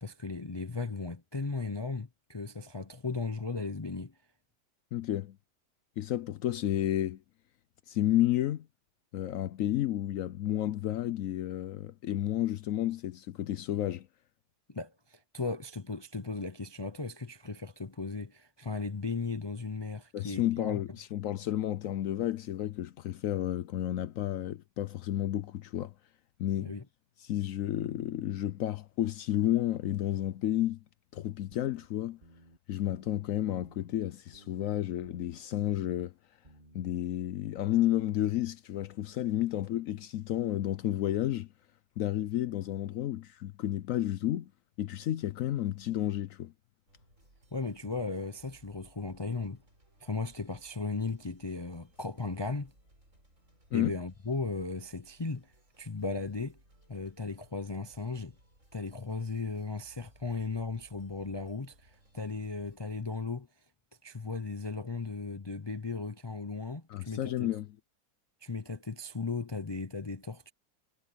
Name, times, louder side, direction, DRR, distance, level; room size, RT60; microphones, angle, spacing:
voice 1, 0.0-4.1 14.7-20.8 26.6-26.8 47.5-49.6 50.0-52.7 53.7-56.6 56.9-58.3 58.7-63.5 64.0-67.5 68.4-70.5, left 4 dB, 40° left, 0.3 m, -36 dB
voice 2, 4.9-5.4 6.0-7.2 7.9-8.7 9.1-14.1 20.1-25.9 26.4-26.7 27.2-30.8 31.1-32.2 32.7-36.1 36.7-41.5 42.0-44.5 44.8-46.5 53.7-53.9 66.9-67.7, left 13 dB, 70° left, 0.9 m, -31 dB
sound 1, 31.5-31.9 32.2-32.6 32.9-33.3 33.6-34.0 34.3-34.7 35.0-35.4 35.7-36.1 36.4-36.8, right 1 dB, 30° right, 2.8 m, -58 dB
sound 2, 46.9-62.8, right 1 dB, 55° right, 8.6 m, -63 dB
omnidirectional pair, 1.6 m